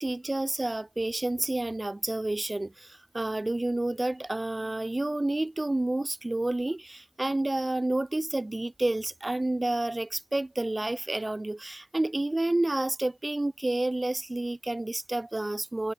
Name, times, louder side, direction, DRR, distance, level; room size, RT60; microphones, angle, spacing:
voice 1, 0.0-15.9, right 2 dB, 35° right, 1.9 m, -29 dB
cardioid pair, 40°, 0 cm